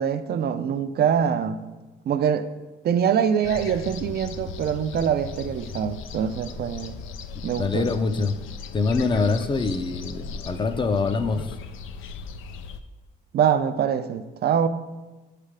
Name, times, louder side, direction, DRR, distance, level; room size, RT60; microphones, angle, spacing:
voice 1, 0.0-1.6 2.1-2.5 2.8-6.9 7.4-7.9 13.3-14.7, right 8 dB, 55° right, 0.4 m, -24 dB
sound 1, 3.4-12.8, left 5 dB, 80° left, 0.4 m, -37 dB
voice 2, 7.6-8.4 8.7-11.6, left 4 dB, 25° left, 0.5 m, -24 dB
8.1 x 3.3 x 4.9 m
cardioid pair, 90°, 20 cm